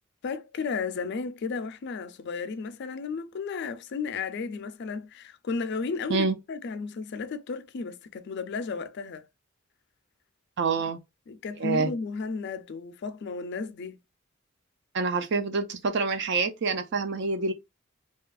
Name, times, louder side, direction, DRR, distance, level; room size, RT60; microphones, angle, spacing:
voice 1, 0.2-9.3 11.3-14.0, left 4 dB, 60° left, 0.4 m, -34 dB
voice 2, 10.6-11.0 11.6-11.9 14.9-17.5, right 4 dB, 60° right, 0.5 m, -26 dB
2.7 x 2.4 x 2.3 m
head